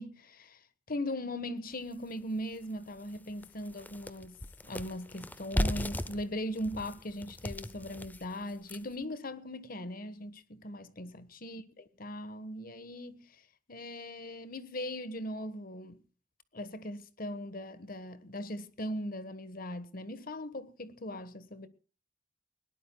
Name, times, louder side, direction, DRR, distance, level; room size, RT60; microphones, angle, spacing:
voice 1, 0.0-16.0 16.5-21.7, left 1 dB, 45° left, 1.3 m, -39 dB
sound 1, 1.9-2.0 2.5-2.6 3.0-9.0, left 1 dB, 10° left, 0.6 m, -37 dB
20.5 x 18.0 x 2.3 m
head